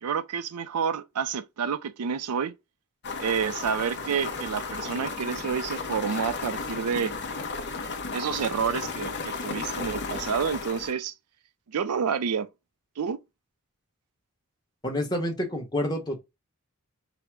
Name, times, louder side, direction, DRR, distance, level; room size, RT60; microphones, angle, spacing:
voice 1, 0.0-2.5 3.2-7.1 8.1-11.1 11.7-12.5 13.0-13.2, right 6 dB, 85° right, 0.4 m, -29 dB
sound 1, 3.0-10.9, left 4 dB, 50° left, 0.7 m, -34 dB
voice 2, 14.8-16.2, left 1 dB, 20° left, 1.0 m, -28 dB
5.0 x 2.1 x 4.6 m
head